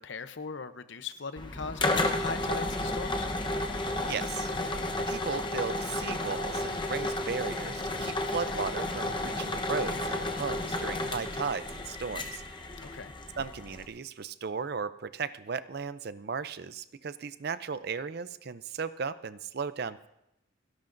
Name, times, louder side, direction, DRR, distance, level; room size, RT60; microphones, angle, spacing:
voice 1, 0.0-3.3 12.8-13.1, left 4 dB, 60° left, 11 dB, 0.7 m, -39 dB
sound 1, 1.4-13.9, left 2 dB, 25° left, 0.9 m, -32 dB
voice 2, 4.1-4.5 5.0-12.4 13.4-20.1, right 5 dB, 50° right, 14 dB, 0.5 m, -36 dB
30.0 x 11.5 x 2.6 m, 0.85 s
head